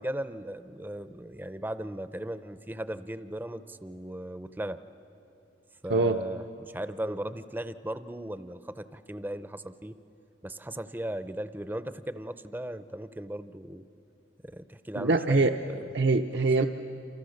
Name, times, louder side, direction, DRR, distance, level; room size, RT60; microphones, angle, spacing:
voice 1, 0.0-4.8 5.8-9.9 10.4-13.8 14.4-15.9 16.6-16.7, right 1 dB, 10° right, 12 dB, 0.6 m, -37 dB
voice 2, 15.0-15.5 15.9-16.7, right 3 dB, 65° right, 5 dB, 0.7 m, -23 dB
28.5 x 28.0 x 6.5 m, 2.8 s
head